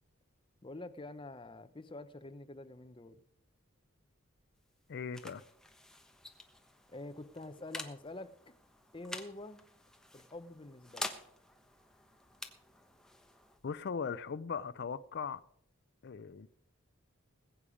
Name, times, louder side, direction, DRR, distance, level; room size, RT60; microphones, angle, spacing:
voice 1, 0.6-3.2 6.9-8.5 8.9-9.6 10.1-11.1, left 2 dB, 25° left, 0.7 m, -47 dB
sound 1, 4.4-15.7, left 1 dB, 5° left, 1.1 m, -49 dB
voice 2, 4.9-5.4 13.6-15.4 16.0-16.5, left 6 dB, 55° left, 0.4 m, -39 dB
20.5 x 8.6 x 5.0 m
head